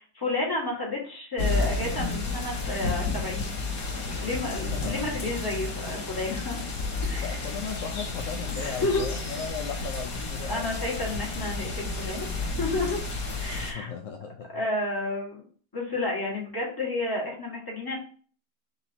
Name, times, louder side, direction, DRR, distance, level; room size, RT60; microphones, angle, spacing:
voice 1, 0.0-3.5 4.0-6.6 7.0-7.4 8.5-9.3 10.5-13.0 13.4-13.9 14.5-15.4 15.7-18.0, left 2 dB, 15° left, -3 dB, 1.3 m, -31 dB
sound 1, 1.4-13.7, left 3 dB, 60° left, 1.5 m, -31 dB
voice 2, 4.7-5.2 7.2-10.7 13.6-14.5, left 7 dB, 75° left, 3 dB, 0.7 m, -36 dB
4.2 x 2.9 x 4.1 m, 0.44 s
omnidirectional pair, 1.8 m